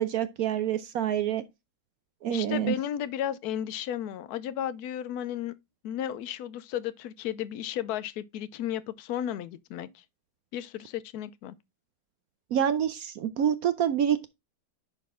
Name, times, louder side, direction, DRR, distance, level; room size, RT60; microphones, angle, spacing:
voice 1, 0.0-1.4 2.2-2.8 12.5-14.3, right 9 dB, 75° right, 0.8 m, -27 dB
voice 2, 2.3-5.5 5.8-9.9 10.5-11.5, left 10 dB, 70° left, 0.9 m, -34 dB
10.0 x 4.1 x 3.6 m
omnidirectional pair, 2.2 m